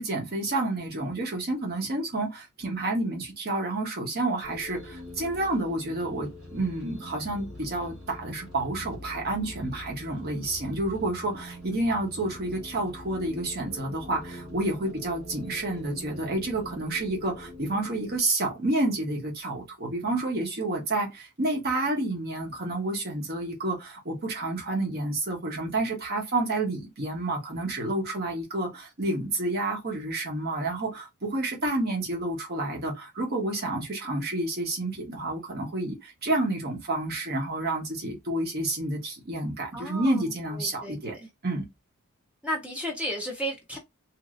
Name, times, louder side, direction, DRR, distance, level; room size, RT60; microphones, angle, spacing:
voice 1, 0.0-41.1 41.4-41.6, right 2 dB, 45° right, 1.0 m, -29 dB
sound 1, 4.4-18.2, left 1 dB, 75° right, 1.6 m, -44 dB
voice 2, 39.7-41.3 42.4-43.8, equal, 5° right, 0.5 m, -34 dB
3.0 x 2.7 x 2.4 m
head